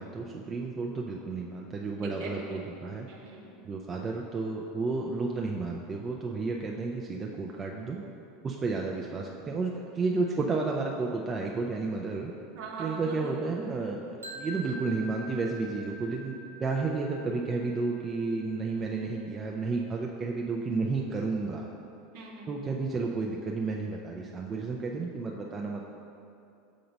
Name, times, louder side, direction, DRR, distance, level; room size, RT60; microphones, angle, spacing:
voice 1, 0.0-3.1 3.6-8.0 8.4-12.3 12.8-16.3 16.6-21.7 22.5-25.8, right 3 dB, 25° right, -1 dB, 0.5 m, -32 dB
voice 2, 2.0-2.3 3.1-3.5 12.5-13.3 22.1-22.5, right 4 dB, 55° right, -1 dB, 1.0 m, -40 dB
sound 1, 14.2-20.1, right 1 dB, 80° right, 0.6 m, -46 dB
6.6 x 3.8 x 5.2 m, 2.6 s
figure-of-eight pair, 80°, 0 cm